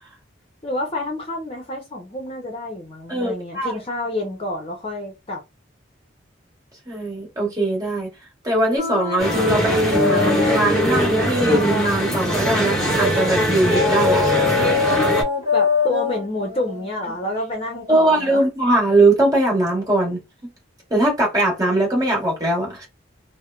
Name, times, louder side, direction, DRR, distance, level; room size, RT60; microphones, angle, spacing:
voice 1, 0.6-5.4 15.5-18.4, left 1 dB, 30° left, 0.7 m, -28 dB
voice 2, 3.1-3.7 6.9-8.1 8.4-14.3 17.9-20.2 20.9-22.9, right 1 dB, 20° right, 1.3 m, -20 dB
sound 1, 8.8-12.9 13.7-18.4, left 6 dB, 35° right, 1.0 m, -25 dB
sound 2, 9.2-15.2, right 1 dB, 5° left, 1.1 m, -21 dB
3.2 x 2.1 x 2.4 m
head